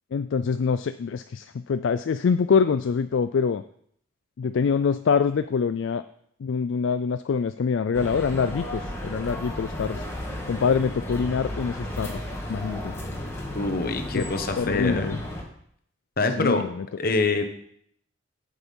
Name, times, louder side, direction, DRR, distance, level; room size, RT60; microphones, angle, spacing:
voice 1, 0.1-3.6 4.4-6.0 6.4-10.1 10.5-12.2 12.5-12.9 14.1-14.3 14.6-15.2 16.4-16.9, left 5 dB, 65° left, 10 dB, 0.3 m, -25 dB
sound 1, 7.9-15.4, left 1 dB, 10° left, 1.8 m, -34 dB
voice 2, 13.5-15.1 16.2-16.6 17.0-17.5, left 3 dB, 45° left, 7 dB, 1.1 m, -25 dB
8.2 x 8.1 x 5.4 m, 0.67 s
head